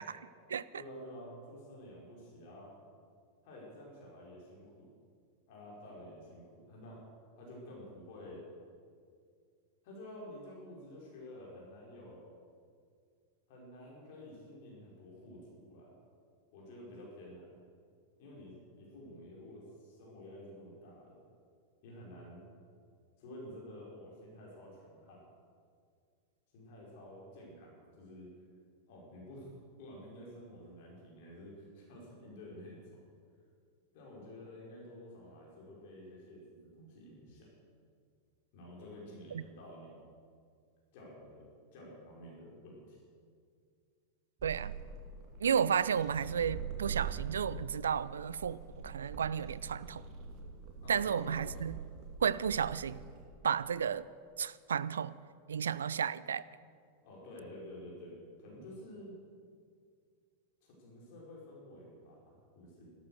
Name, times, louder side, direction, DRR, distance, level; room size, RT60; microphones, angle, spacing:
voice 1, 0.8-2.7 3.4-4.9 5.5-7.0 7.4-8.4 9.8-12.4 13.5-15.9 16.5-17.5 18.2-21.2 21.8-22.4 23.2-25.3 26.5-28.3 28.9-33.0 33.9-37.5 38.5-40.0 40.9-43.0 50.8-51.5 57.0-59.1 60.6-62.9, left 1 dB, 50° left, -4 dB, 5.1 m, -50 dB
sound 1, 44.4-53.3, right 6 dB, 35° right, 2.3 m, -44 dB
voice 2, 44.4-44.7 45.4-48.6 48.8-50.0 50.9-51.8 52.2-53.0 53.4-54.1 54.4-55.1 55.5-56.4, right 7 dB, 65° right, 18 dB, 0.4 m, -32 dB
13.5 x 13.5 x 6.6 m, 2.2 s
figure-of-eight pair, 90°, 0 cm